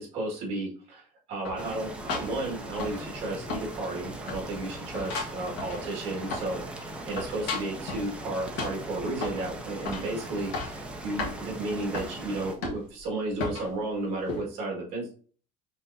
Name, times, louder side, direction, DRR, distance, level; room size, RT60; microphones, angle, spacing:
voice 1, 0.0-15.1, right 2 dB, 45° right, -2 dB, 1.8 m, -33 dB
sound 1, 1.4-3.2 3.5-4.0 4.3-6.7 6.9-8.1 8.6-9.5 9.8-10.1 10.4-10.8 11.2-11.4 11.9-12.1 12.6-13.0 13.4-13.7 14.3-14.4, left 3 dB, 70° left, 1.5 m, -35 dB
sound 2, 1.6-12.5, right 1 dB, 5° right, 0.5 m, -40 dB
5.6 x 3.3 x 2.6 m, 0.43 s
cardioid pair, 175°, 15 cm